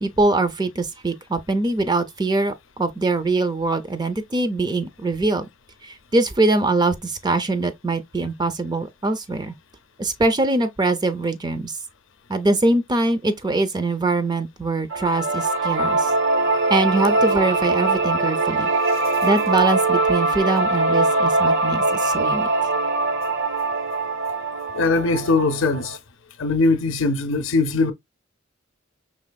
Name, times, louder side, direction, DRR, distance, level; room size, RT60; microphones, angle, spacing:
voice 1, 0.0-5.5 5.8-9.5 10.0-11.8 12.3-16.1 16.7-18.7 19.2-22.5, right 2 dB, 20° right, 0.4 m, -23 dB
sound 1, 14.9-26.0, right 3 dB, 65° right, 0.7 m, -22 dB
voice 2, 24.7-26.0 26.4-27.9, left 3 dB, 70° left, 0.6 m, -20 dB
5.1 x 3.3 x 2.2 m
head